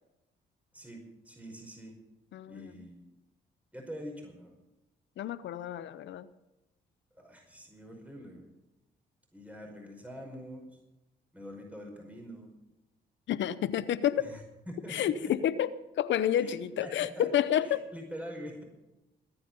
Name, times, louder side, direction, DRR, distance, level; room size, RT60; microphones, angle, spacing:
voice 1, 0.7-1.9 2.5-3.0 3.7-4.5 7.1-8.5 9.3-10.6 11.3-12.5 14.2-14.4 14.7-15.3 16.4-16.5 16.8-16.9 17.1-17.3 17.7-18.6, equal, 5° right, 1 dB, 5.1 m, -44 dB
voice 2, 2.3-2.9 5.2-6.3 13.3-14.2 14.9-17.8, left 10 dB, 75° left, 15 dB, 0.8 m, -30 dB
20.5 x 9.2 x 5.4 m, 0.98 s
supercardioid pair, 65°, 19 cm